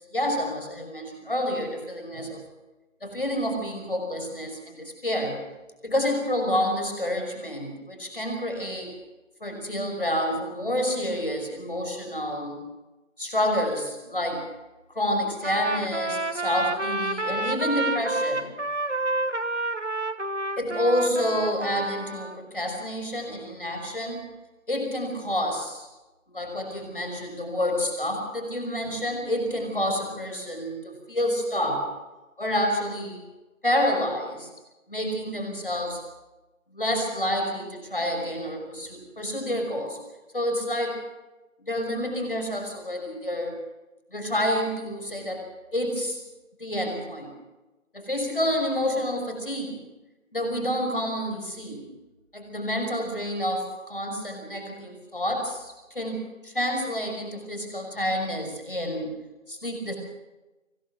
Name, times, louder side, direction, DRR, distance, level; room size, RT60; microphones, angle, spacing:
voice 1, 0.1-2.4 3.0-5.4 5.8-8.9 9.4-12.6 13.2-14.4 15.0-18.5 20.6-24.2 24.7-25.9 26.3-31.9 32.4-33.2 33.6-34.5 34.9-36.0 36.7-40.0 40.3-41.0 41.7-43.5 44.1-45.4 45.7-46.2 46.6-47.3 47.9-49.8 50.3-51.9 52.3-59.1 59.5-60.0, left 1 dB, 40° left, 3 dB, 5.9 m, -28 dB
Trumpet, 15.4-22.4, right 2 dB, 55° right, 1.5 m, -29 dB
25.5 x 17.0 x 6.3 m, 1.1 s
figure-of-eight pair, 175°, 41 cm